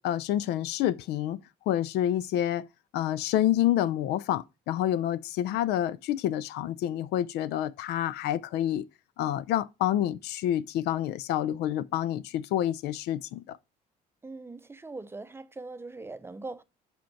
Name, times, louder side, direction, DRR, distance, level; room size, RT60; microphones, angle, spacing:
voice 1, 0.0-1.4 1.7-2.7 2.9-8.9 9.2-13.6, left 12 dB, 80° left, 0.4 m, -28 dB
voice 2, 14.2-16.6, right 3 dB, 15° right, 0.5 m, -41 dB
5.7 x 5.2 x 4.4 m
cardioid pair, 110°, 17 cm